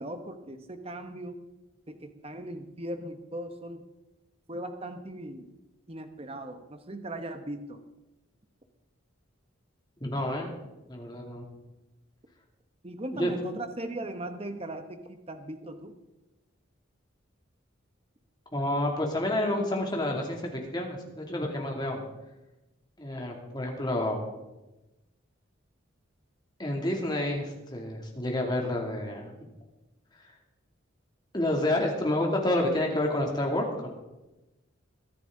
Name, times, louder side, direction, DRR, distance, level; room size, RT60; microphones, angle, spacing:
voice 1, 0.0-1.3 1.9-3.8 4.5-5.5 5.9-7.8 12.8-15.9, right 1 dB, 30° right, 7 dB, 1.0 m, -38 dB
voice 2, 10.0-10.6 10.9-11.4 13.1-13.4 18.5-22.0 23.0-24.2 26.6-29.4 31.3-33.9, left 1 dB, 20° left, 0 dB, 2.6 m, -29 dB
22.5 x 10.0 x 3.9 m, 1.0 s
head